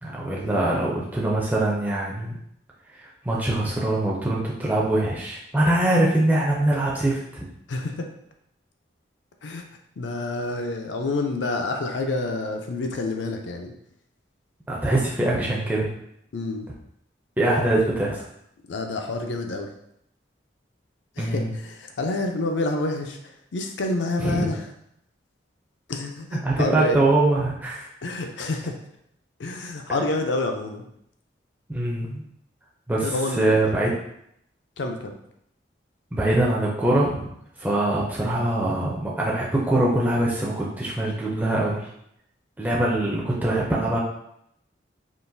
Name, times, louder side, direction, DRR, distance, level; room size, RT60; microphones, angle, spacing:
voice 1, 0.0-2.4 3.0-7.4 14.7-15.9 17.4-18.2 21.2-21.5 24.2-24.5 26.4-27.9 31.7-32.2 32.9-33.9 36.1-37.3 37.6-41.9 42.6-44.0, right 1 dB, 10° right, -5 dB, 0.4 m, -23 dB
voice 2, 7.7-8.1 9.4-9.6 10.0-13.7 16.3-16.7 18.7-19.7 21.2-24.7 25.9-27.0 28.0-28.8 29.4-30.9 33.0-33.7 34.8-35.2, left 2 dB, 75° left, 4 dB, 0.5 m, -28 dB
3.8 x 2.5 x 2.6 m, 0.74 s
head